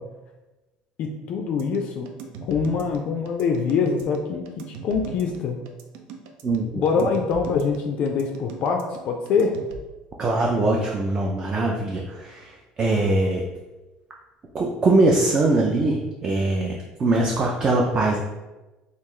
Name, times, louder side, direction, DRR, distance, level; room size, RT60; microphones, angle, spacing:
voice 1, 1.0-2.1 2.4-5.6 6.7-9.6, left 5 dB, 50° left, 3 dB, 0.3 m, -24 dB
sound 1, 1.6-9.8, right 5 dB, 90° right, 0.4 m, -40 dB
voice 2, 6.4-7.1 10.2-13.4 14.5-18.2, right 2 dB, 25° right, -1 dB, 0.4 m, -22 dB
3.1 x 2.4 x 3.7 m, 1.1 s
cardioid pair, 150°, 3 cm